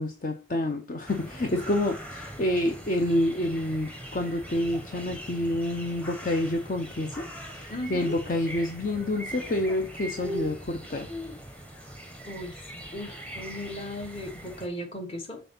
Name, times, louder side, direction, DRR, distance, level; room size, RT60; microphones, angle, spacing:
voice 1, 0.0-7.3 7.5-11.1, left 1 dB, 45° left, 0.7 m, -28 dB
sound 1, 1.1-14.7, equal, 5° left, 1.0 m, -41 dB
voice 2, 7.7-8.2 12.3-15.4, left 1 dB, 30° left, 1.4 m, -37 dB
6.1 x 3.9 x 5.6 m
head